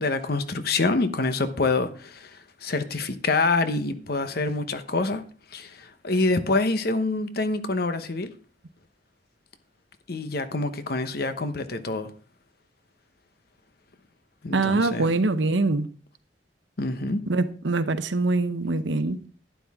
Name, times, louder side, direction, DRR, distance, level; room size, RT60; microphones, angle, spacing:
voice 1, 0.0-5.2 5.5-8.3 10.1-12.1 14.4-15.3 16.8-17.2, left 3 dB, 60° left, 1.0 m, -26 dB
voice 2, 14.5-15.9 17.3-19.2, right 3 dB, 90° right, 0.9 m, -24 dB
11.5 x 9.6 x 3.6 m
head